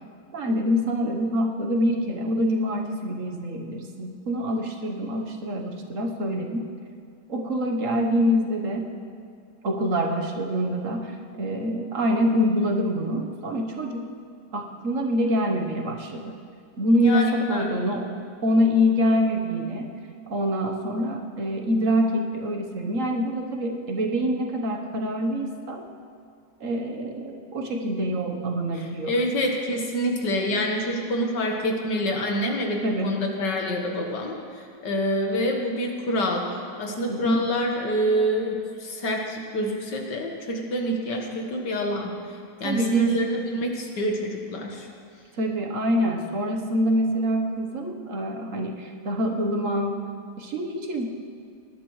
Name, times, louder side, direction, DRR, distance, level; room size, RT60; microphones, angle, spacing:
voice 1, 0.3-6.7 7.3-8.9 9.6-14.1 14.5-16.3 16.8-18.1 18.4-19.9 20.3-25.8 26.6-29.1 32.8-33.2 37.1-37.5 42.6-43.1 45.4-50.1 50.4-51.1, equal, 50° right, 2 dB, 1.3 m, -25 dB
voice 2, 17.0-18.0 28.7-36.5 36.8-42.1 42.6-44.9, equal, 70° left, 1 dB, 2.0 m, -27 dB
19.5 x 11.0 x 3.2 m, 2.4 s
omnidirectional pair, 1.9 m